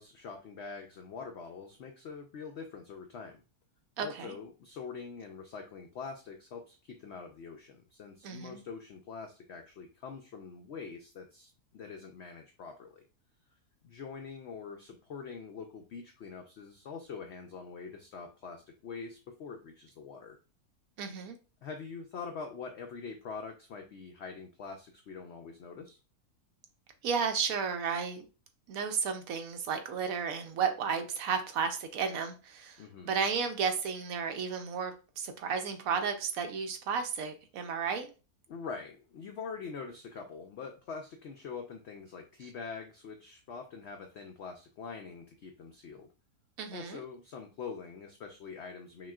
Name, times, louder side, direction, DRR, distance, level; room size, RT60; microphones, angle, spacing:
voice 1, 0.0-3.4 4.0-13.0 13.8-20.4 21.6-26.0 32.8-33.1 38.5-46.1 46.7-49.1, left 5 dB, 75° left, 4 dB, 0.6 m, -44 dB
voice 2, 4.0-4.3 8.2-8.6 21.0-21.4 27.0-28.2 28.7-38.1 46.6-47.0, right 6 dB, 70° right, 6 dB, 1.0 m, -33 dB
5.8 x 2.4 x 2.3 m, 0.33 s
omnidirectional pair, 1.7 m